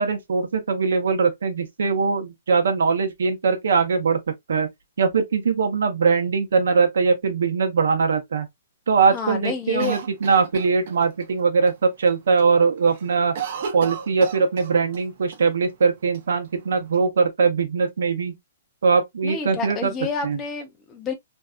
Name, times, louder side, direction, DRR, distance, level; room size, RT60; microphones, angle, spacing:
voice 1, 0.0-4.2 4.5-4.7 5.0-8.5 8.9-13.3 13.7-18.4 18.8-19.9 20.2-20.4, right 5 dB, 80° right, 0.8 m, -21 dB
voice 2, 9.1-10.0 19.2-21.1, left 5 dB, 10° left, 0.5 m, -29 dB
Cough, 9.8-11.3 11.7-11.8 12.1-12.5 12.8-15.0 15.3-15.4 16.1-16.9, right 7 dB, 40° right, 0.6 m, -34 dB
2.6 x 2.2 x 2.3 m
hypercardioid pair, 175°, 0 cm